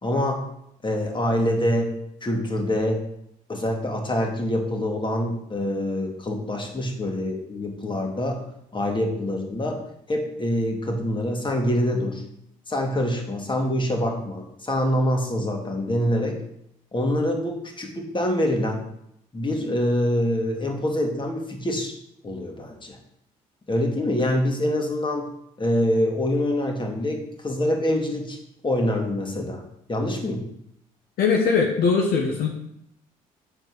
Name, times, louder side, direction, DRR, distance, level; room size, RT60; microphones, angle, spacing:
voice 1, 0.0-0.4 0.8-3.0 3.5-8.4 8.7-9.8 10.1-12.2 12.7-16.4 16.9-18.8 19.3-21.9 22.2-23.0 23.7-25.3 25.6-28.4 28.6-29.6 29.9-30.5, left 1 dB, 30° left, 2 dB, 2.4 m, -25 dB
voice 2, 31.2-32.5, left 5 dB, 70° left, 1 dB, 1.4 m, -20 dB
9.3 x 4.5 x 6.3 m, 0.76 s
supercardioid pair, 60°, 17 cm